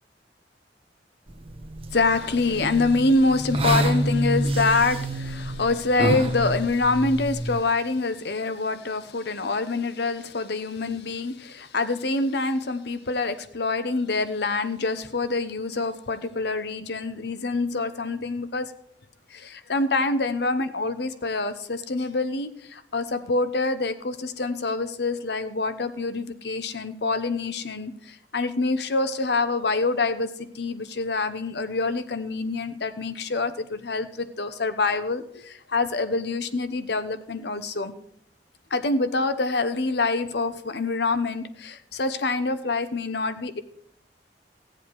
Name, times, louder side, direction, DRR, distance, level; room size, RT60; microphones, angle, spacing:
sound 1, 1.3-7.6, right 1 dB, 30° right, 1.0 m, -28 dB
voice 1, 1.9-18.7 19.3-37.9 38.7-43.6, left 3 dB, 65° left, 11 dB, 0.9 m, -26 dB
16.5 x 7.9 x 4.7 m, 0.69 s
head